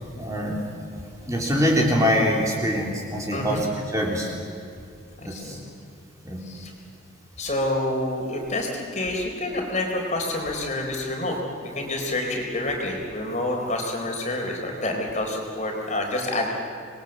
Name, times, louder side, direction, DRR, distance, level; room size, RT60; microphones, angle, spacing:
voice 1, 0.2-0.6 1.2-4.3 5.2-5.6 6.2-6.4, equal, 15° right, -2 dB, 3.4 m, -24 dB
voice 2, 3.3-3.6 5.3-5.6 6.5-6.7 7.4-16.5, left 1 dB, 35° left, 1 dB, 4.1 m, -28 dB
27.0 x 21.5 x 7.9 m, 2.4 s
head